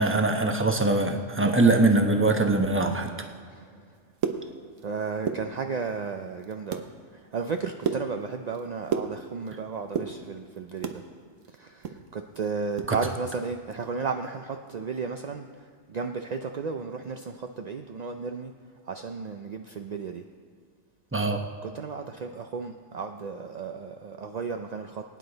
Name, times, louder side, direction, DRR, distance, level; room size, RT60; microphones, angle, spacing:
voice 1, 0.0-3.1 12.9-13.0 21.1-21.4, right 2 dB, 10° right, 4 dB, 0.8 m, -22 dB
sound 1, 3.9-4.9 5.1-6.0 6.4-6.9 7.3-9.6 9.8-11.0 11.4-12.9 13.2-13.3 13.7-13.9 14.3-14.5, right 6 dB, 85° right, 1.2 m, -32 dB
voice 2, 4.8-6.8 7.3-11.0 11.6-15.5 15.9-18.5 18.9-20.2 21.6-25.0, right 5 dB, 55° right, 5 dB, 0.4 m, -33 dB
21.0 x 9.7 x 4.0 m, 2.1 s
omnidirectional pair, 1.3 m